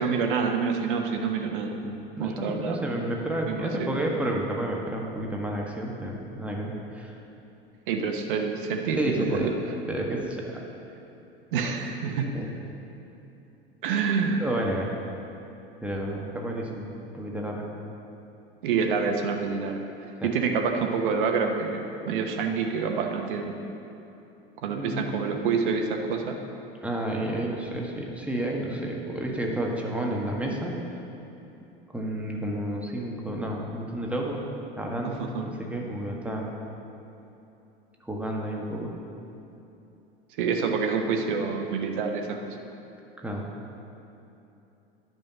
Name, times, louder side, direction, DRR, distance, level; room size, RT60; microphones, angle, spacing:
voice 1, 0.0-1.8 2.2-2.8 3.5-3.9 7.9-9.6 11.5-12.3 13.8-14.4 18.6-19.8 20.2-23.6 24.6-26.4 35.0-35.4 40.4-42.6, right 5 dB, 60° right, 4 dB, 1.1 m, -27 dB
voice 2, 1.8-7.1 8.9-9.5 9.9-10.6 12.1-12.5 14.4-14.9 15.8-16.8 17.1-17.7 20.2-20.3 24.6-25.2 26.8-30.8 31.9-34.4 34.8-36.5 38.0-38.9 43.2-43.4, right 1 dB, 5° right, -2 dB, 1.6 m, -31 dB
10.5 x 6.1 x 6.8 m, 2.9 s
figure-of-eight pair, 75°, 29 cm